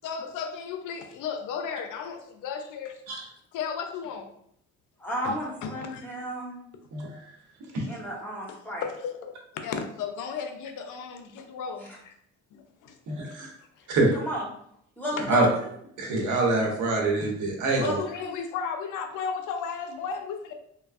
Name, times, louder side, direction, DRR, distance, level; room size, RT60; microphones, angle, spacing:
voice 1, 0.0-3.0 3.5-4.3 5.2-6.0 8.5-12.1 12.5-13.0 13.2-13.3 15.2-15.3 17.8-20.5, left 6 dB, 85° left, 6 dB, 0.5 m, -35 dB
voice 2, 5.0-6.6 7.9-8.8 14.1-14.4 15.0-15.5 17.8-18.3, equal, 5° left, -3 dB, 1.0 m, -33 dB
voice 3, 13.1-13.5 13.9-14.1 15.3-15.5 16.0-18.0, right 2 dB, 80° right, 0 dB, 0.8 m, -25 dB
3.2 x 2.0 x 2.4 m, 0.70 s
cardioid pair, 90°, 30 cm